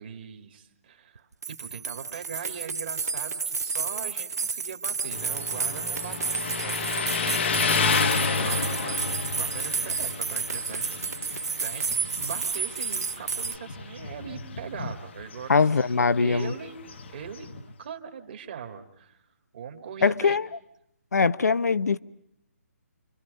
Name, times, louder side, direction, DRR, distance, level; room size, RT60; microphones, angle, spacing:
voice 1, 0.0-6.9 7.2-15.6 16.2-16.8 17.1-19.3 19.5-20.4, right 7 dB, 40° right, 2.2 m, -41 dB
sound 1, 1.2-1.3 1.4-13.6, right 5 dB, 85° right, 0.8 m, -31 dB
Motorcycle, 5.1-17.7, left 5 dB, 45° left, 1.2 m, -31 dB
voice 2, 15.5-16.5 20.0-20.4 21.1-22.0, left 5 dB, 85° left, 0.9 m, -22 dB
29.5 x 24.0 x 5.4 m
hypercardioid pair, 170°, 9 cm